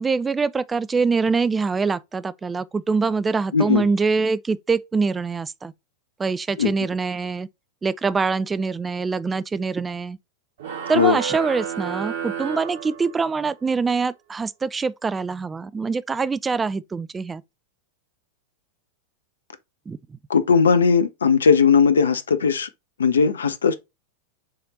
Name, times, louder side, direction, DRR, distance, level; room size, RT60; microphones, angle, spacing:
voice 1, 0.0-5.7 6.2-7.5 7.8-10.2 10.9-17.4 19.9-20.2, right 4 dB, 15° right, 0.4 m, -24 dB
voice 2, 3.5-3.9 6.6-6.7 10.9-11.2 20.3-22.7 23.0-23.7, left 6 dB, 70° left, 0.6 m, -18 dB
sound 1, 10.6-13.5, right 7 dB, 55° right, 1.4 m, -31 dB
6.9 x 3.3 x 4.0 m
figure-of-eight pair, 90°, 0 cm